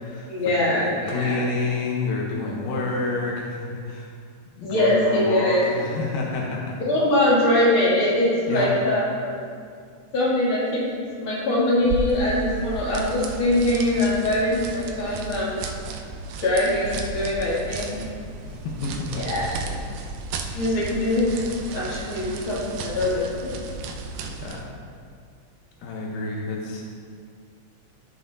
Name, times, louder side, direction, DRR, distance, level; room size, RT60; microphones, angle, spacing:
voice 1, 0.3-1.4 2.4-2.5 4.6-5.6 6.8-9.4 10.1-10.8 11.2-15.6 16.4-18.0 19.1-19.8 20.5-23.6, left 1 dB, 40° left, -8 dB, 3.2 m, -23 dB
voice 2, 1.1-4.1 4.6-6.8 8.5-8.7 18.5-19.2 24.4-24.6 25.8-26.8, left 3 dB, 85° left, -2 dB, 2.7 m, -28 dB
sound 1, 11.8-24.7, right 3 dB, 85° right, 2.3 m, -34 dB
14.5 x 7.2 x 2.7 m, 2.2 s
omnidirectional pair, 3.6 m